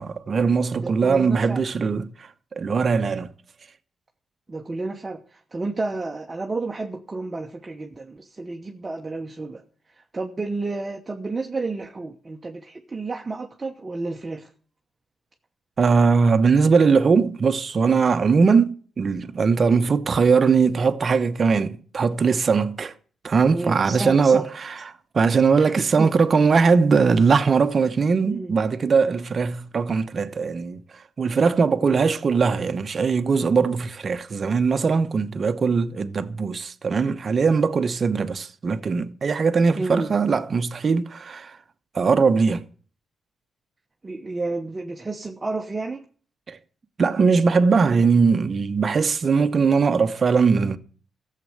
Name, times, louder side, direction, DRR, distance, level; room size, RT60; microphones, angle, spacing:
voice 1, 0.0-2.1 2.6-3.3 15.8-22.9 23.2-24.8 25.1-30.8 31.2-41.6 41.9-42.7 46.5-46.6 47.0-50.8, right 5 dB, 40° right, 1.0 m, -20 dB
voice 2, 0.8-1.6 4.5-9.6 10.0-14.5 23.5-24.5 25.6-26.1 28.2-28.6 31.8-32.0 39.8-40.1 44.0-46.0, right 3 dB, 25° right, 1.1 m, -31 dB
14.5 x 7.7 x 7.7 m
cardioid pair, 120°, 0 cm